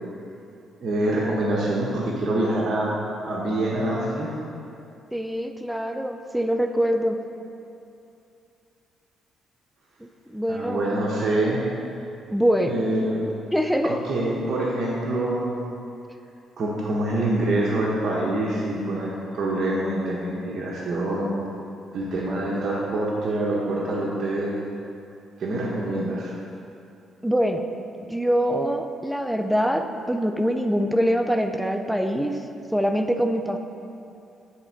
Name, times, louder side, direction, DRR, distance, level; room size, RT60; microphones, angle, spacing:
voice 1, 0.8-3.0 3.2-4.3 10.5-11.7 12.6-13.2 13.8-15.6 16.6-21.3 21.9-24.6 25.4-26.3, right 1 dB, 55° right, -4 dB, 1.0 m, -25 dB
voice 2, 5.1-7.2 10.0-10.8 12.3-12.7 13.5-14.0 27.2-27.6 28.0-32.4 32.7-33.6, equal, ahead, 5 dB, 0.5 m, -24 dB
9.1 x 3.4 x 4.5 m, 2.6 s
cardioid pair, 90°, 0 cm